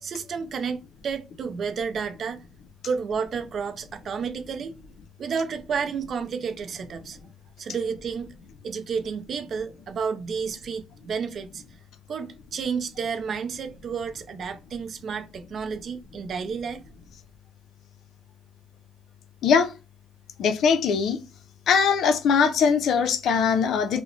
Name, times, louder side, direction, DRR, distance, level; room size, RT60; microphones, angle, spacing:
voice 1, 0.0-2.4 2.8-4.7 5.2-7.2 7.6-8.3 8.6-11.6 12.1-16.8, right 6 dB, 55° right, 0.4 m, -31 dB
voice 2, 20.4-21.2 21.7-24.0, left 6 dB, 75° left, 0.5 m, -21 dB
2.9 x 2.0 x 3.8 m
cardioid pair, 90°, 0 cm